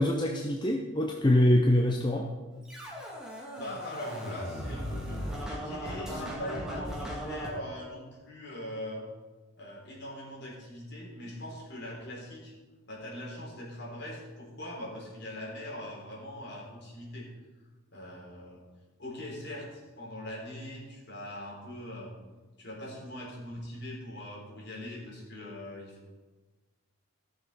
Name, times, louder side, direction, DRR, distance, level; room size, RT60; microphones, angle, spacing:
voice 1, 0.0-2.3, left 1 dB, 20° left, 1 dB, 0.7 m, -24 dB
Scratching (performance technique), 2.7-7.5, equal, 5° right, 1.9 m, -37 dB
voice 2, 3.6-9.1 9.6-12.5 12.9-17.3 17.9-18.6 19.0-22.1 22.6-26.1, left 1 dB, 50° left, -4 dB, 3.7 m, -41 dB
14.5 x 6.6 x 5.4 m, 1.3 s
head